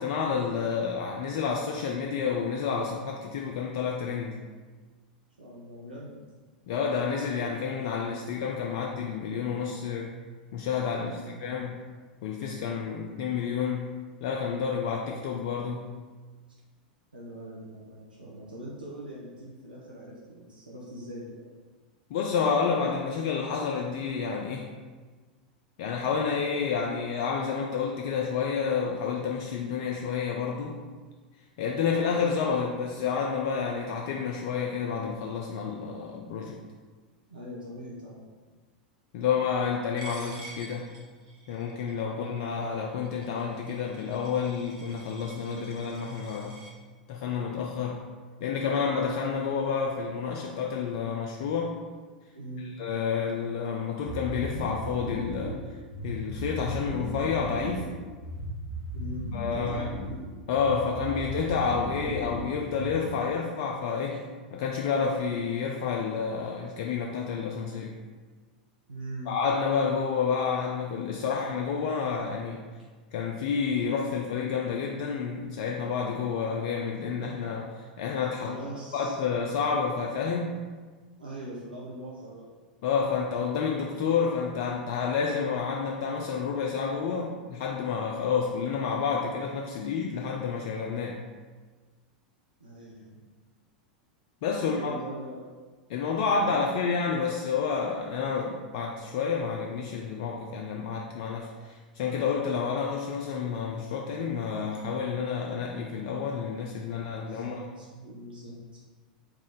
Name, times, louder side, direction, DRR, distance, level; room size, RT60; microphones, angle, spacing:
voice 1, 0.0-4.4 6.7-10.1 10.5-11.9 12.2-15.9 22.1-24.7 25.8-30.8 31.6-36.6 39.1-41.0 41.5-46.6 47.1-48.1 48.4-51.9 52.8-55.6 56.0-57.9 59.3-59.9 60.5-67.9 69.3-72.6 73.1-78.5 78.9-80.7 82.8-91.2 94.4-94.9 95.9-107.6, left 6 dB, 55° left, 0 dB, 0.3 m, -29 dB
voice 2, 5.4-6.2 10.9-11.6 17.1-21.5 37.3-38.3 42.0-42.3 52.3-52.7 58.9-60.2 68.9-69.4 78.5-79.2 81.2-82.4 92.6-93.2 94.7-95.5 96.3-96.9 106.8-108.8, right 1 dB, 90° right, -6 dB, 0.6 m, -42 dB
Coin (dropping), 40.0-46.7, right 2 dB, 50° right, 1.0 m, -48 dB
sound 1, 54.1-63.3, equal, 5° left, 1.2 m, -36 dB
3.5 x 2.4 x 3.9 m, 1.4 s
figure-of-eight pair, 90°, 5 cm